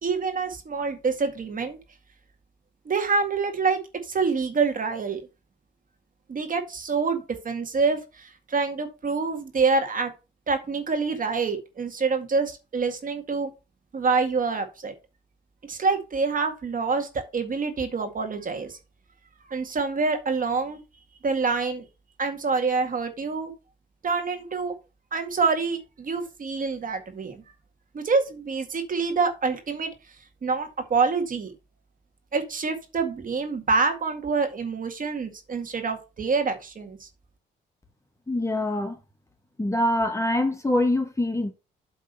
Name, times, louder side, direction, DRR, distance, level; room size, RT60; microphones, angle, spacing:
voice 1, 0.0-1.8 2.9-5.2 6.3-10.1 10.5-13.5 13.9-14.9 15.7-18.8 19.5-20.8 21.2-21.8 22.2-23.5 24.0-24.7 25.1-27.4 27.9-29.9 30.4-31.5 32.3-37.1, right 4 dB, 45° right, 2.0 m, -26 dB
voice 2, 38.3-39.0 39.6-41.5, left 1 dB, 15° left, 1.5 m, -24 dB
8.4 x 3.6 x 6.8 m
cardioid pair, 90°, 20 cm